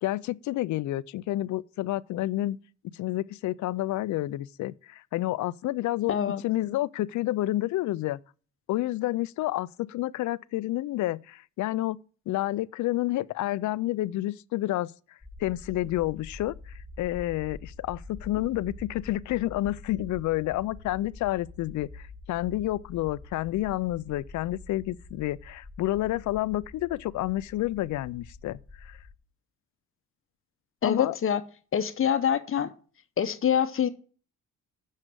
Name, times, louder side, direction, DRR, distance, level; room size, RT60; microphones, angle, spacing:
voice 1, 0.0-2.6 2.9-6.2 6.4-8.2 8.7-12.0 12.3-29.0 30.8-31.2, left 16 dB, 70° left, 0.5 m, -29 dB
voice 2, 6.1-6.4 30.8-31.4 31.7-32.7 33.2-33.9, left 8 dB, 45° left, 0.8 m, -25 dB
sound 1, 15.2-29.1, left 2 dB, 15° left, 0.9 m, -46 dB
7.5 x 6.5 x 7.9 m
cardioid pair, 90°, 30 cm